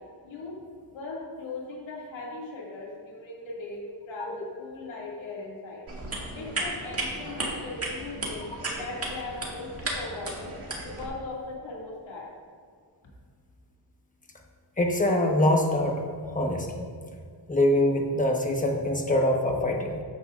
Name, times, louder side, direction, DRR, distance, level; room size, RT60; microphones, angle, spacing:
voice 1, 0.9-5.8 6.3-8.4 8.7-10.5 10.8-12.3, left 3 dB, 85° left, -4 dB, 2.4 m, -38 dB
sound 1, 5.9-11.1, right 2 dB, 30° right, 1.9 m, -34 dB
voice 2, 14.8-16.0 16.3-16.7 17.5-20.0, left 1 dB, 15° left, 1 dB, 1.1 m, -24 dB
13.5 x 10.0 x 2.5 m, 2.1 s
wide cardioid pair, 160°, 45 cm